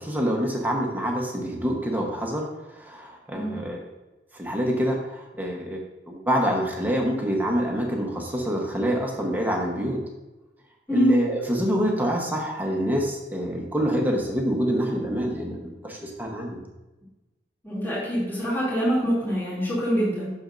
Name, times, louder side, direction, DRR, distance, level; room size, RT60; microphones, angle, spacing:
voice 1, 0.0-3.9 4.3-10.0 10.9-16.6, equal, 10° right, 0 dB, 1.0 m, -26 dB
voice 2, 17.6-20.3, equal, 15° left, -9 dB, 2.5 m, -25 dB
8.5 x 6.4 x 2.5 m, 1.1 s
head